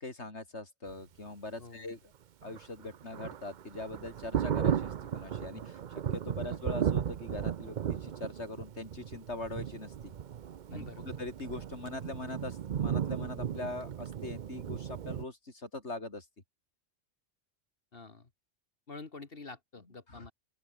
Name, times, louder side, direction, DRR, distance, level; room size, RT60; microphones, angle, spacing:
voice 1, 0.0-2.1 2.4-5.8 6.1-10.1 10.7-16.3 20.1-20.3, left 2 dB, 65° left, 4.7 m, -42 dB
voice 2, 1.6-1.9 6.4-6.6 10.7-11.2 17.9-18.3 18.9-20.3, left 3 dB, 50° left, 2.0 m, -47 dB
Thunder, 2.4-15.2, right 9 dB, 50° right, 0.6 m, -35 dB
open air
omnidirectional pair, 1.2 m